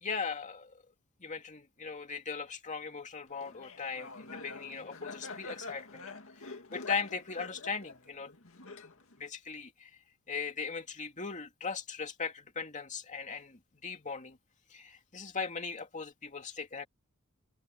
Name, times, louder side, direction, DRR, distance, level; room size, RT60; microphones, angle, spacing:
voice 1, 0.0-0.8 1.2-6.1 6.4-8.3 9.2-9.9 10.3-14.4 14.7-16.9, left 5 dB, 35° left, 2.6 m, -39 dB
Laughter, 3.4-9.3, left 3 dB, 65° left, 2.3 m, -45 dB
head